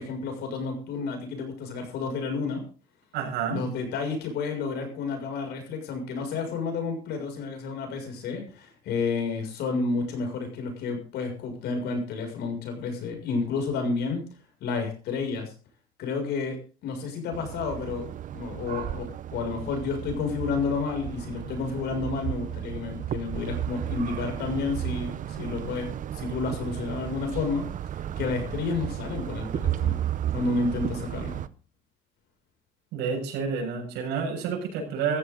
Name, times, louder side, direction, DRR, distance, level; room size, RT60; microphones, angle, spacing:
voice 1, 0.0-2.6 3.5-14.2 14.6-15.5 16.0-16.6 16.8-18.0 18.3-27.7 28.2-30.0 30.3-31.4, left 4 dB, 80° left, 4 dB, 6.8 m, -30 dB
voice 2, 3.1-3.6 32.9-35.2, right 6 dB, 90° right, 1 dB, 6.9 m, -29 dB
sound 1, 17.3-31.5, right 11 dB, 50° right, 0.8 m, -33 dB
15.5 x 14.5 x 4.0 m, 0.36 s
cardioid pair, 110°, 17 cm